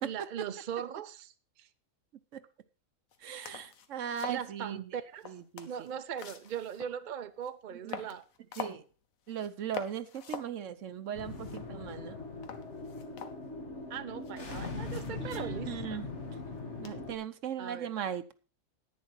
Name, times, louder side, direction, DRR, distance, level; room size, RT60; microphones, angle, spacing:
voice 1, 0.0-1.7 4.3-5.3 5.6-8.3 13.9-16.0 17.6-17.9, right 8 dB, 45° right, 10 dB, 0.6 m, -39 dB
sound 1, 3.1-3.2 3.5-4.5 5.1-7.0 7.4-7.5 7.9-8.9 9.3-9.5 9.7-10.6 10.9-11.0 11.2-12.0 12.4-13.8 14.2-15.6 16.8-17.2, left 7 dB, 80° left, 1.4 m, -45 dB
voice 2, 3.2-4.8 5.3-5.7 7.8-8.0 8.6-8.8 9.3-12.2 15.2-16.1 16.8-18.3, right 9 dB, 65° right, 13 dB, 1.1 m, -38 dB
sound 2, 11.1-17.1, left 3 dB, 55° left, 1.8 m, -41 dB
10.5 x 9.5 x 4.5 m, 0.34 s
omnidirectional pair, 1.4 m